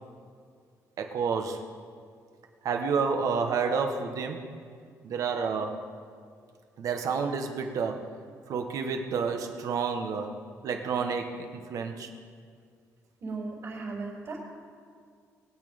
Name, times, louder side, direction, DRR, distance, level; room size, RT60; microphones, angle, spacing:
voice 1, 1.0-1.7 2.6-4.5 5.0-5.9 6.8-8.2 8.5-12.1, right 5 dB, 65° right, 5 dB, 1.5 m, -30 dB
voice 2, 13.2-14.4, right 3 dB, 50° right, -5 dB, 4.1 m, -36 dB
21.0 x 8.9 x 5.4 m, 2.1 s
cardioid pair, 135°, 6 cm